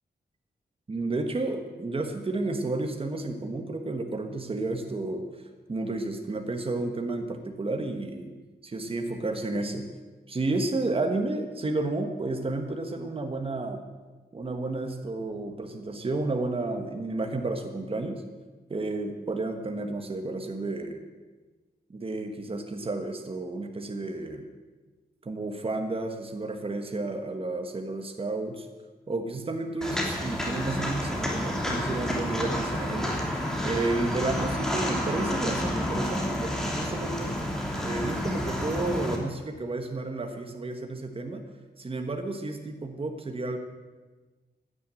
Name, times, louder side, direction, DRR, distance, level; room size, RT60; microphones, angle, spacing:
voice 1, 0.9-5.2 5.7-8.3 8.6-9.9 10.3-13.8 14.3-18.2 18.7-21.0 21.9-24.5 25.2-28.7 29.1-41.4 41.8-43.6, right 2 dB, 30° right, 5 dB, 1.4 m, -31 dB
Walk footsteps, 29.8-39.2, equal, 5° left, 2.7 m, -30 dB
16.5 x 10.5 x 7.6 m, 1.3 s
wide cardioid pair, 145°, 18 cm